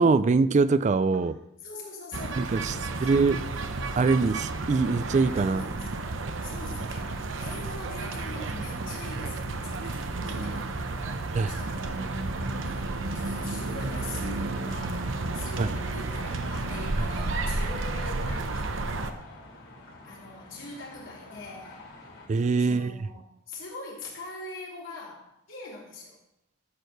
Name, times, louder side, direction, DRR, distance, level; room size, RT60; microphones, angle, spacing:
voice 1, 0.0-1.3 2.4-2.7 3.0-3.4 4.0-5.6 11.3-11.5 15.6-15.7 22.3-22.9, right 4 dB, 35° right, 15 dB, 0.3 m, -23 dB
voice 2, 1.6-3.1 5.4-6.0 6.4-12.1 12.6-19.3 20.0-21.8 22.6-26.2, left 2 dB, 65° left, -4 dB, 3.5 m, -43 dB
sound 1, 2.1-19.1, right 2 dB, 65° right, 0.8 m, -32 dB
sound 2, 11.1-22.3, left 2 dB, 85° left, 3.5 m, -49 dB
12.5 x 4.6 x 6.6 m, 0.84 s
head